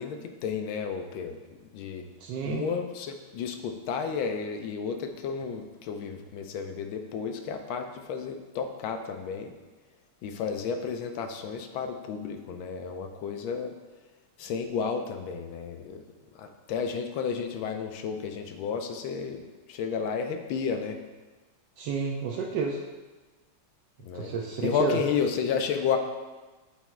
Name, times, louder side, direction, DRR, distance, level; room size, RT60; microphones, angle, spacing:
voice 1, 0.0-1.4 1.7-2.1 2.4-9.5 10.2-13.7 14.4-16.0 16.3-21.0 24.0-24.3 24.6-26.0, left 6 dB, 75° left, 5 dB, 1.4 m, -32 dB
voice 2, 2.2-2.6 21.8-22.8 24.1-25.0, right 5 dB, 75° right, 0 dB, 1.0 m, -31 dB
8.4 x 3.0 x 4.4 m, 1.2 s
omnidirectional pair, 2.3 m